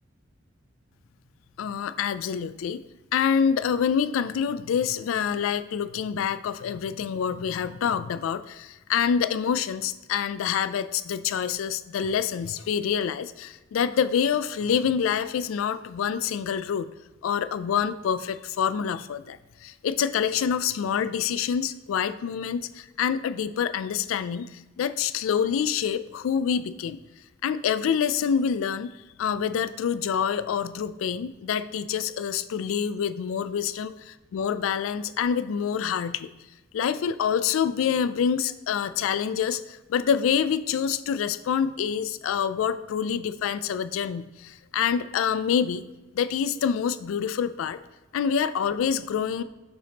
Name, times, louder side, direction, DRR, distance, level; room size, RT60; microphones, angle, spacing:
voice 1, 1.6-2.8 3.1-16.9 17.2-27.0 27.4-28.9 29.2-33.9 34.3-36.3 36.7-45.8 46.1-47.8 48.1-49.4, left 7 dB, 85° left, 14 dB, 0.3 m, -26 dB
6.8 x 5.1 x 2.8 m, 1.1 s
head